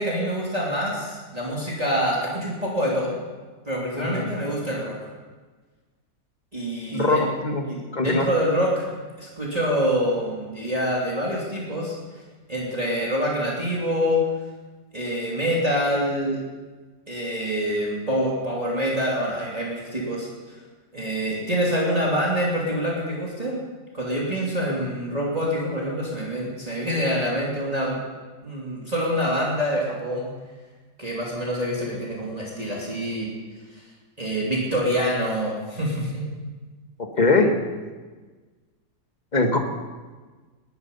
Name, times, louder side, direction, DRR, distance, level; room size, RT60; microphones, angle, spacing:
voice 1, 0.0-3.2 3.7-4.9 6.5-7.2 7.7-11.9 12.5-14.2 14.9-16.4 17.1-20.3 20.9-23.6 23.9-28.0 28.4-30.3 31.0-33.3 33.7-33.8 34.2-36.3, equal, 25° right, -4 dB, 3.1 m, -26 dB
voice 2, 4.0-4.3 6.9-7.6 7.9-8.3 37.0-37.6 39.3-39.6, left 3 dB, 25° left, 4 dB, 1.7 m, -21 dB
19.5 x 13.0 x 5.5 m, 1.4 s
omnidirectional pair, 1.7 m